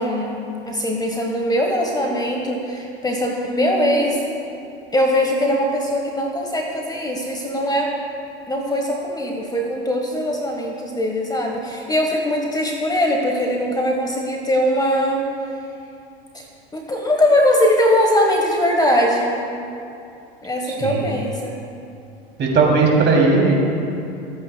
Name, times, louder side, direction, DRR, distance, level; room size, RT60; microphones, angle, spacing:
voice 1, 0.0-4.2 4.9-7.9 8.5-15.2 16.3-16.4 16.7-19.4 20.4-21.6, equal, 15° left, 1 dB, 1.2 m, -21 dB
voice 2, 20.7-21.0 22.4-23.6, right 4 dB, 35° right, -1 dB, 2.8 m, -17 dB
24.0 x 8.7 x 2.2 m, 2.6 s
hypercardioid pair, 90°, 31 cm